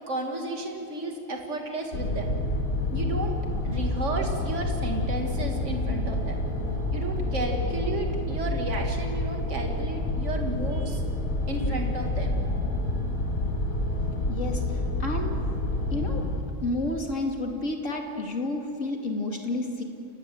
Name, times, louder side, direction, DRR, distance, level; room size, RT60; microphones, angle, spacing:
voice 1, 0.1-2.3 2.9-3.3 3.6-6.4 6.9-11.0 11.5-12.3, right 2 dB, 60° right, 2 dB, 2.7 m, -33 dB
sound 1, 1.9-16.4, left 1 dB, 80° left, 3.0 m, -28 dB
voice 2, 14.3-15.3 15.9-16.3 16.6-19.8, left 2 dB, 65° left, 2 dB, 2.9 m, -31 dB
29.5 x 18.5 x 7.9 m, 2.7 s
omnidirectional pair, 1.4 m